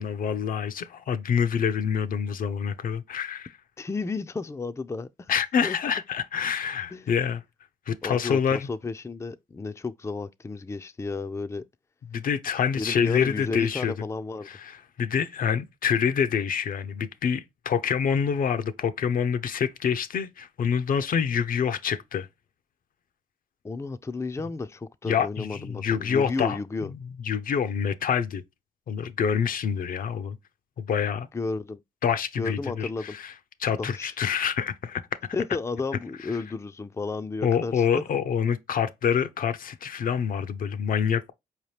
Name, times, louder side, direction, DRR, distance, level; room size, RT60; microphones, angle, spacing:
voice 1, 0.0-3.5 5.3-7.4 7.9-8.7 12.1-13.9 14.5-22.3 25.1-26.6 26.9-27.0 27.2-28.4 28.9-30.4 30.8-31.3 32.0-33.3 33.6-35.0 37.4-41.3, left 7 dB, 65° left, 0.5 m, -26 dB
voice 2, 3.8-5.3 5.6-5.8 6.9-7.1 8.0-11.6 12.7-14.5 23.6-26.9 31.3-31.8 32.4-33.2 33.8-34.1 35.3-38.0, left 3 dB, 20° left, 0.4 m, -32 dB
4.6 x 2.9 x 3.2 m
supercardioid pair, 55°, 16 cm